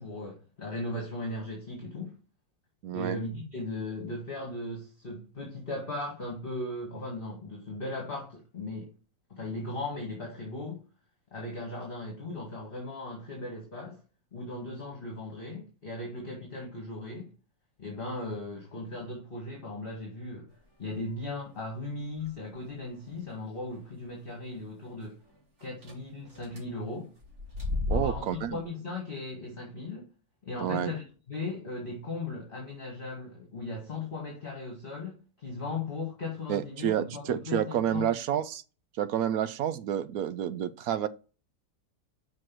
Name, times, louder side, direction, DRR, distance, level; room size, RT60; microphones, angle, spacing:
voice 1, 0.0-2.2 2.9-8.9 9.3-10.8 11.3-14.0 14.3-17.3 17.8-20.5 20.8-25.2 25.6-27.1 27.9-30.1 30.4-38.1, left 2 dB, 30° left, 2.0 m, -37 dB
voice 2, 2.8-3.2 27.9-28.6 30.6-30.9 36.5-38.6 39.0-41.1, right 10 dB, 70° right, 0.9 m, -29 dB
sound 1, 22.0-22.3 22.9-23.0 23.3-23.4 23.7-23.8 25.8-25.9 26.3-26.6 27.2-28.6, left 2 dB, 40° right, 2.7 m, -33 dB
6.2 x 4.7 x 6.0 m
omnidirectional pair, 1.8 m